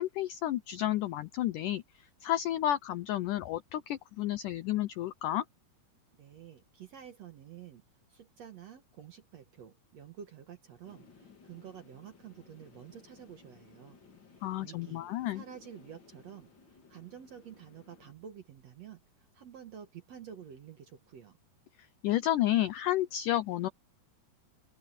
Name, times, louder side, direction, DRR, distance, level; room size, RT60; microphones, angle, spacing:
voice 1, 0.0-1.8 2.2-5.4 14.4-15.4 22.0-23.7, left 13 dB, 90° left, 1.8 m, -31 dB
voice 2, 6.2-7.8 8.1-14.0 14.3-21.4, right 8 dB, 60° right, 1.8 m, -50 dB
sound 1, 10.8-18.1, left 4 dB, 35° left, 2.3 m, -58 dB
open air
omnidirectional pair, 4.6 m